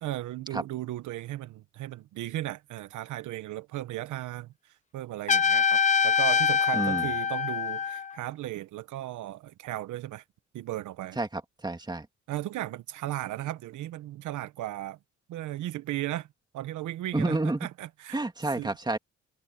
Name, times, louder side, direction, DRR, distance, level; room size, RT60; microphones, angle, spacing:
voice 1, 0.0-10.2 10.5-11.2 12.3-15.0 15.3-16.3 16.5-18.2 18.6-18.7, right 14 dB, 80° right, 0.9 m, -36 dB
Trumpet, 5.3-8.1, left 6 dB, 25° left, 0.9 m, -24 dB
voice 2, 6.8-7.1 11.2-12.1 17.1-17.7 18.1-19.0, right 2 dB, 15° right, 2.4 m, -29 dB
cardioid pair, 90°, 30 cm